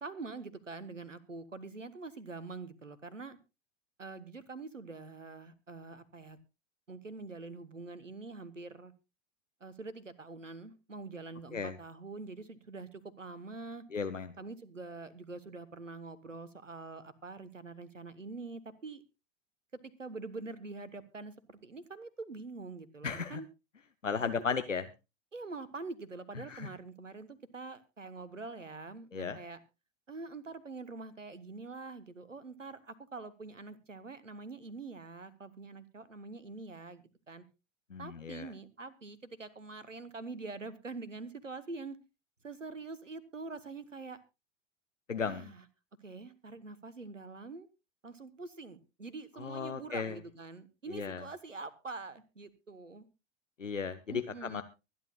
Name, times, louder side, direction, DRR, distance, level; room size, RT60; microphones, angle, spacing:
voice 1, 0.0-3.4 4.0-6.4 6.9-8.9 9.6-13.8 14.4-19.0 20.0-23.5 24.5-24.6 25.3-29.6 30.1-37.4 38.0-42.0 42.4-44.2 45.2-45.6 46.0-47.7 48.0-53.1 54.1-54.6, right 3 dB, 90° right, 16 dB, 1.2 m, -45 dB
voice 2, 13.9-14.3 23.0-23.4 24.0-24.8 26.4-26.7 29.1-29.4 37.9-38.5 45.1-45.5 49.4-50.2 50.9-51.2 53.6-54.6, left 5 dB, 90° left, 11 dB, 0.9 m, -35 dB
24.0 x 10.5 x 2.3 m, 0.27 s
figure-of-eight pair, 90°, 37 cm